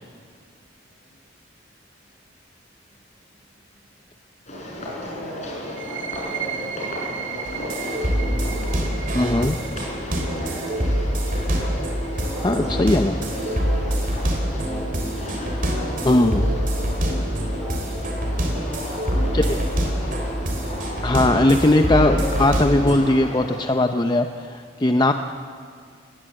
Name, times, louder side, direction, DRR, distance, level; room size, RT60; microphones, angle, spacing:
sound 1, 4.5-23.6, left 1 dB, 35° left, 5.5 m, -35 dB
voice 1, 4.8-8.0 9.8-10.9 12.0-14.9 15.6-20.2 24.8-25.0, equal, 5° right, -6 dB, 7.0 m, -39 dB
sound 2, 5.6-13.1, right 9 dB, 85° right, 2.0 m, -36 dB
sound 3, 7.5-23.0, equal, 45° right, 3.5 m, -25 dB
voice 2, 9.1-9.6 12.4-13.1 16.1-16.4 19.3-19.6 21.0-25.1, left 1 dB, 20° left, 7 dB, 0.6 m, -19 dB
20.0 x 18.0 x 7.7 m, 2.1 s
head